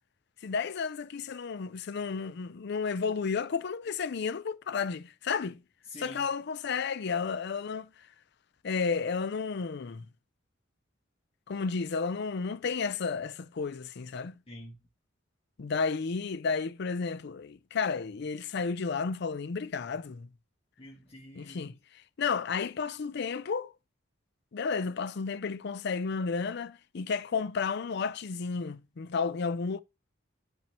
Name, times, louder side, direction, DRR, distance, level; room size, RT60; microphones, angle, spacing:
voice 1, 0.4-5.6 6.0-7.9 8.6-10.1 11.5-14.3 15.6-20.3 21.4-21.8 22.2-23.7 24.5-29.8, left 5 dB, 60° left, 0.5 m, -32 dB
voice 2, 5.9-6.3 14.5-14.8 20.8-21.7, left 1 dB, 30° left, 1.9 m, -47 dB
12.5 x 4.6 x 3.0 m
head